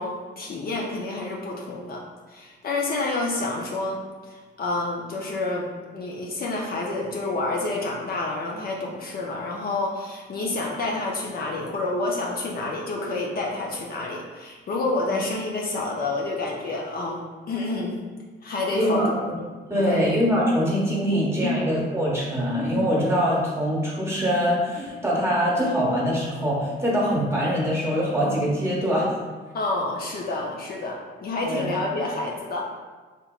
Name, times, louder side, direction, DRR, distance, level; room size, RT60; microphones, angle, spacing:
voice 1, 0.0-2.0 2.3-4.0 4.3-17.9 18.4-19.1 19.8-20.1 21.4-21.6 29.5-32.6, left 2 dB, 50° left, -2 dB, 0.5 m, -29 dB
voice 2, 18.7-19.1 19.7-29.1 31.4-31.7, equal, 15° right, -5 dB, 1.1 m, -23 dB
3.2 x 2.9 x 2.3 m, 1.4 s
cardioid pair, 90°, 20 cm